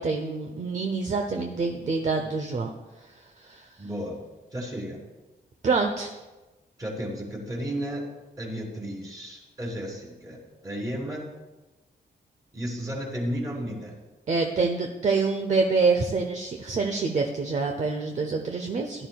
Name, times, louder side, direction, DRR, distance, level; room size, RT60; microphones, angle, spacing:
voice 1, 0.0-2.7 3.4-3.7 5.6-6.1 14.3-19.1, right 4 dB, 45° right, 4 dB, 0.8 m, -26 dB
voice 2, 3.8-4.2 4.5-5.0 6.8-8.1 8.4-11.3 12.5-13.9, equal, 20° right, -2 dB, 3.2 m, -33 dB
16.0 x 11.0 x 2.3 m, 1.1 s
wide cardioid pair, 135°, 18 cm